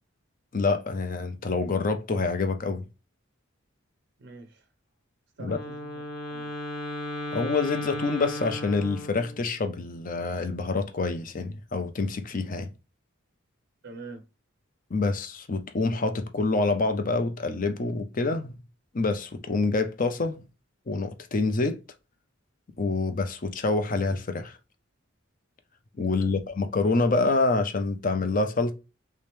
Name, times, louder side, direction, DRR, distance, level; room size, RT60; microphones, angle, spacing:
voice 1, 0.5-2.8 5.4-5.6 7.3-12.7 14.9-18.5 18.9-20.4 20.9-21.8 22.8-24.6 26.0-28.7, left 3 dB, 40° left, 0.6 m, -26 dB
voice 2, 4.2-4.7 5.4-6.6 13.8-14.3 26.2-26.4, right 3 dB, 55° right, 0.5 m, -44 dB
Wind instrument woodwind instrument, 5.4-9.5, left 1 dB, 70° left, 1.2 m, -35 dB
3.3 x 2.9 x 3.3 m
head